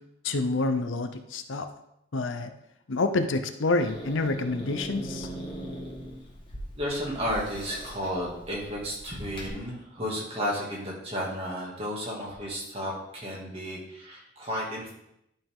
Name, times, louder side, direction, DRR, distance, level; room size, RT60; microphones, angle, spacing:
voice 1, 0.2-1.7 2.1-2.5 2.9-5.3, left 2 dB, 85° left, 8 dB, 0.7 m, -27 dB
Growling / Hiss, 3.8-9.5, equal, 25° left, 1.6 m, -40 dB
voice 2, 6.7-14.9, equal, 30° right, -3 dB, 2.3 m, -33 dB
11.0 x 5.5 x 3.7 m, 0.82 s
head